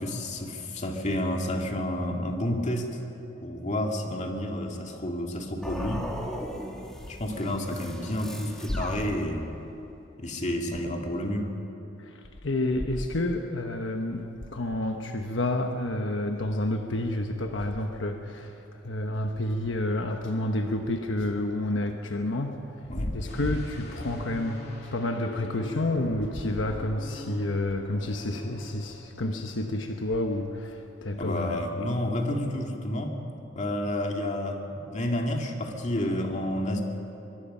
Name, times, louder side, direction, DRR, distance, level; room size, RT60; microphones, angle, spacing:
voice 1, 0.0-2.9 3.4-6.1 7.1-9.5 10.2-11.5 22.9-23.1 31.2-33.2 33.5-36.8, left 1 dB, 40° left, 2 dB, 2.2 m, -30 dB
sound 1, 5.6-9.7, equal, 5° left, 2.2 m, -38 dB
voice 2, 12.0-22.7 23.1-24.6 24.9-31.6, left 1 dB, 75° left, 4 dB, 1.1 m, -29 dB
sound 2, 23.3-29.0 29.3-29.6, left 1 dB, 60° left, 2.9 m, -44 dB
23.5 x 22.5 x 5.6 m, 3.0 s
head